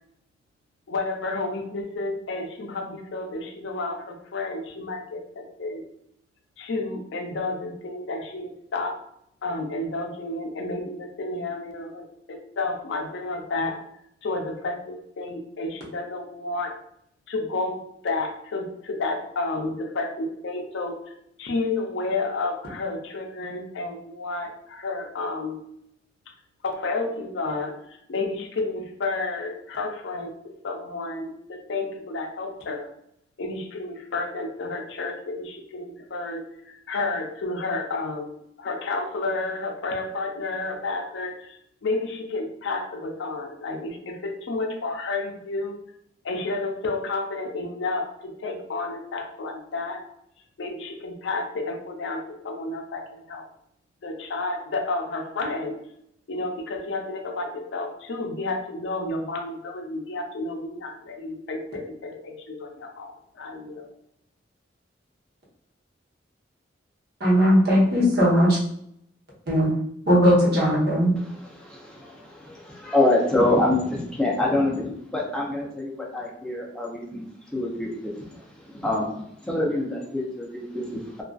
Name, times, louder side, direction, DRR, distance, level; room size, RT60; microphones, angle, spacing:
voice 1, 0.9-5.8 6.6-9.0 9.4-13.8 14.2-16.7 17.3-21.0 21.4-25.6 26.6-32.9 33.4-38.3 38.6-45.8 46.2-50.0 50.6-53.4 54.0-55.8 56.3-63.9, left 3 dB, 75° left, 3 dB, 0.5 m, -31 dB
voice 2, 67.2-68.6 69.5-69.7 70.1-71.1, equal, 60° right, -5 dB, 0.9 m, -18 dB
voice 3, 71.2-77.2 77.5-79.1 79.4-81.2, left 2 dB, 5° left, -3 dB, 0.4 m, -26 dB
2.4 x 2.3 x 2.3 m, 0.73 s
head